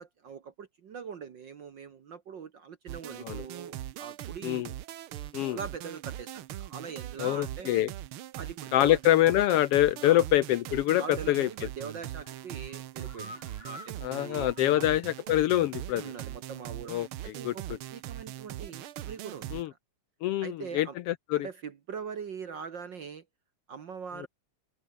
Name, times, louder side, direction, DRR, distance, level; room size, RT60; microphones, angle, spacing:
voice 1, 0.0-4.7 5.5-7.8 8.3-9.0 10.0-10.3 11.0-14.9 15.9-16.9 17.2-19.6 20.4-20.9 21.3-23.2 23.7-24.3, right 6 dB, 55° right, 1.4 m, -42 dB
sound 1, 2.9-19.6, right 13 dB, 70° right, 1.3 m, -41 dB
voice 2, 7.2-7.9 8.7-11.5 14.0-16.1 16.9-17.5 19.5-19.7 20.2-21.5 24.2-24.3, left 14 dB, 80° left, 1.3 m, -25 dB
sound 2, 11.3-11.7 12.1-15.5 15.8-15.9 16.3-16.4, left 2 dB, 20° left, 4.1 m, -50 dB
open air
omnidirectional pair, 3.3 m